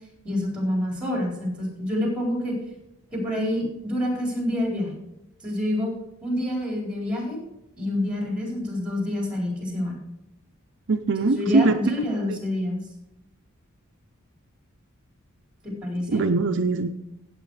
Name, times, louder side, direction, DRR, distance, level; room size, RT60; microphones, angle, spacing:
voice 1, 0.2-2.5 3.1-4.9 5.4-5.9 6.2-7.4 7.8-10.0 11.3-12.8 15.6-16.2, left 1 dB, 5° right, -1 dB, 4.4 m, -27 dB
voice 2, 10.9-11.8 12.3-12.4 16.1-16.9, right 3 dB, 60° right, 6 dB, 0.6 m, -22 dB
15.5 x 8.4 x 4.9 m, 0.88 s
head